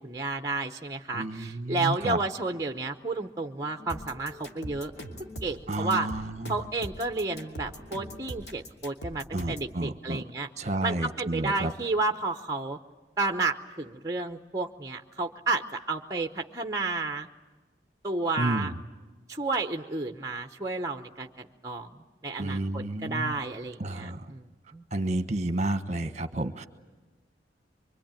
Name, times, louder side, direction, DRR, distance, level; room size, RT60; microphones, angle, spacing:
voice 1, 0.0-4.9 5.4-6.1 6.5-10.5 10.8-12.8 13.2-17.3 18.0-18.7 19.3-21.9 22.2-24.4 24.7-24.8, right 3 dB, 20° right, 5 dB, 0.9 m, -31 dB
voice 2, 1.1-2.2 5.7-6.6 9.3-10.2 10.6-11.7 18.4-18.8 22.4-23.4 23.8-24.3 24.9-26.7, right 2 dB, 40° right, 10 dB, 1.2 m, -31 dB
sound 1, 3.6-6.0 6.3-8.7, left 2 dB, 40° left, 2.7 m, -50 dB
sound 2, 3.9-9.7, right 1 dB, 65° left, 2.8 m, -41 dB
25.0 x 24.0 x 9.0 m, 1.2 s
head